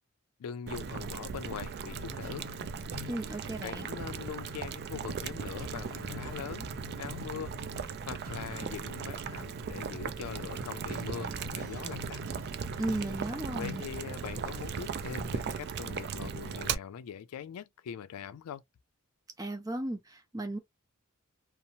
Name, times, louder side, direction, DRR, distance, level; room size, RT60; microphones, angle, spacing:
voice 1, 0.4-2.5 3.6-6.7 7.0-7.5 8.1-12.2 13.5-18.6, left 8 dB, 85° left, 0.3 m, -42 dB
Boiling, 0.7-16.7, right 6 dB, 50° right, 0.3 m, -38 dB
sound 1, 1.9-13.9, left 1 dB, 85° right, 0.7 m, -46 dB
voice 2, 3.1-3.9 12.8-13.8 19.4-20.6, right 1 dB, 15° right, 0.7 m, -35 dB
2.8 x 2.0 x 2.7 m
head